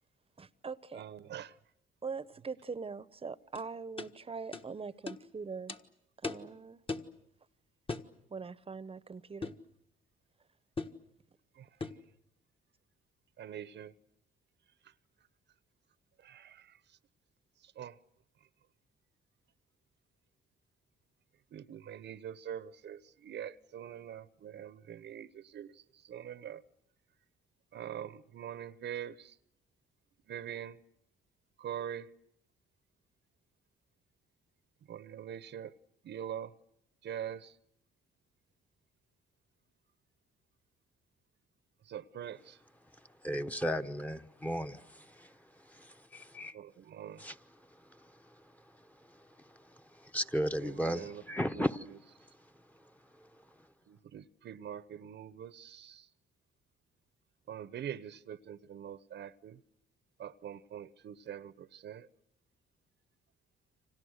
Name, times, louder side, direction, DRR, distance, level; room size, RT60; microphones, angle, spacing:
voice 1, 0.4-1.0 2.0-5.8 6.2-6.8 8.3-9.5, right 5 dB, 30° right, 0.9 m, -42 dB
voice 2, 1.0-1.5 13.4-13.9 16.2-16.6 17.8-17.9 21.5-25.7 26.1-26.6 27.7-29.3 30.3-30.8 31.6-32.1 34.9-35.7 36.0-36.5 37.0-37.5 41.9-42.5 46.5-47.2 50.6-51.2 51.5-51.6 53.9-56.0 57.5-59.6 60.2-62.1, right 9 dB, 60° right, 0.9 m, -43 dB
sound 1, 3.6-3.7 4.0-4.1 4.5-4.7 5.1-5.2 5.7-5.8 6.2-6.5 6.9-7.1 7.9-8.1 9.4-9.7 10.8-11.0 11.8-12.1, left 3 dB, 25° left, 1.5 m, -38 dB
voice 3, 43.2-45.3 45.7-46.6 47.2-47.4 50.0-51.9, equal, 5° left, 1.1 m, -35 dB
29.5 x 26.0 x 6.5 m
cardioid pair, 90°, 20 cm